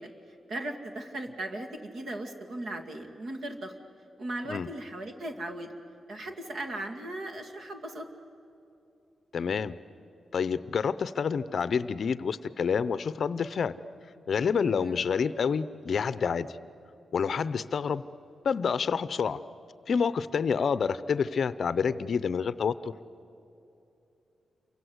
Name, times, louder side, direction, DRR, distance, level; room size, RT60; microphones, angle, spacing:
voice 1, 0.0-3.8 4.2-5.7 6.1-8.1 14.7-15.0, right 1 dB, 65° right, 4 dB, 2.2 m, -38 dB
voice 2, 9.3-9.8 10.3-13.7 14.3-16.6 17.1-18.0 18.4-19.4 19.9-22.9, left 6 dB, 55° left, 15 dB, 0.6 m, -28 dB
28.5 x 24.0 x 7.9 m, 2.8 s
wide cardioid pair, 160°, 0 cm